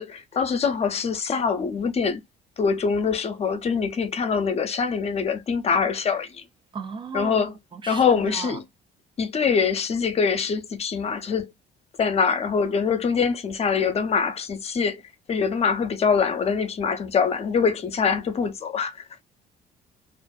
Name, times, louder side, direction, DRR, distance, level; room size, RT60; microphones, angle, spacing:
voice 1, 0.0-2.2 2.6-6.4 7.1-7.5 7.9-8.6 9.2-11.5 12.0-15.0 15.3-19.0, left 6 dB, 40° left, 0.6 m, -24 dB
voice 2, 6.7-7.4 7.7-8.6, right 5 dB, 30° right, 0.4 m, -35 dB
2.5 x 2.4 x 2.3 m
cardioid pair, 110°, 17 cm